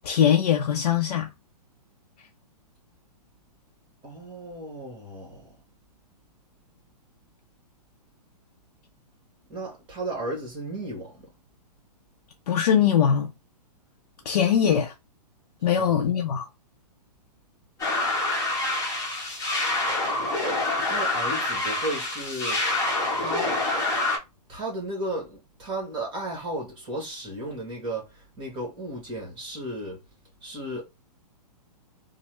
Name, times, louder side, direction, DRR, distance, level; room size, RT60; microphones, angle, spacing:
voice 1, 0.0-1.3 12.5-13.3 14.3-14.9 15.6-16.5, left 8 dB, 65° left, 0.5 m, -21 dB
voice 2, 4.0-5.6 9.5-11.3 15.6-16.1 20.8-22.8 23.1-23.6 24.5-30.0 30.4-30.8, right 1 dB, 25° right, 1.3 m, -34 dB
sound 1, 17.8-24.2, left 2 dB, 15° left, 1.0 m, -26 dB
3.1 x 2.0 x 3.1 m
hypercardioid pair, 140°, 21 cm